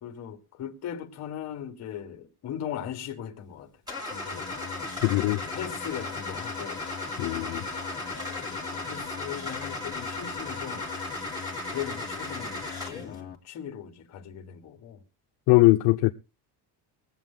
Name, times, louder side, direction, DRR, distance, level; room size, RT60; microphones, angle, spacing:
voice 1, 0.0-3.7 4.0-4.5 5.1-6.8 8.0-10.9 11.7-15.0, left 9 dB, 40° left, 1.6 m, -39 dB
Car / Engine starting, 3.9-13.1, left 2 dB, 10° right, 2.5 m, -36 dB
sound 1, 4.3-13.4, left 8 dB, 25° left, 1.1 m, -43 dB
voice 2, 5.0-5.4 7.2-7.6 15.5-16.1, left 21 dB, 70° left, 0.7 m, -20 dB
21.5 x 8.1 x 3.7 m
cardioid pair, 180°, 41 cm